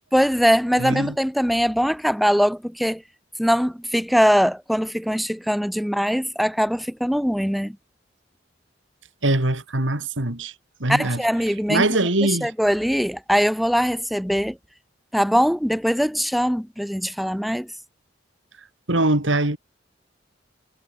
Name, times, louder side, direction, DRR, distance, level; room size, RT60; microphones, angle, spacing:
voice 1, 0.1-3.0 3.4-7.8 10.9-11.9 12.2-14.6 15.1-17.7, equal, ahead, 0.4 m, -21 dB
voice 2, 0.8-1.2 9.2-10.5 10.8-11.2 11.7-12.5 18.9-19.6, right 2 dB, 85° right, 3.1 m, -22 dB
head